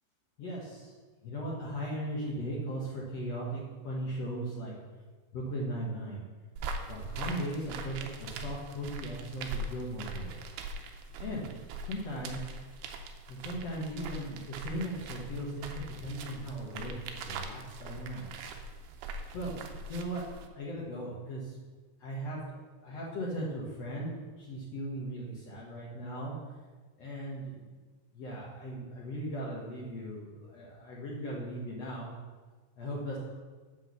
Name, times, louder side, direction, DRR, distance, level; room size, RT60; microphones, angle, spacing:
voice 1, 0.4-0.9 1.2-4.8 5.3-6.2 6.9-10.4 11.2-11.5 11.8-12.5 13.3-18.3 19.3-19.6 19.9-20.2 20.5-21.6 22.0-22.4 22.8-26.3 27.0-27.6 28.1-32.1 32.8-33.1, right 1 dB, 80° left, -4 dB, 1.4 m, -38 dB
sound 1, 6.6-20.5, right 2 dB, 75° right, 2.5 m, -42 dB
8.2 x 6.0 x 6.8 m, 1.4 s
omnidirectional pair, 5.2 m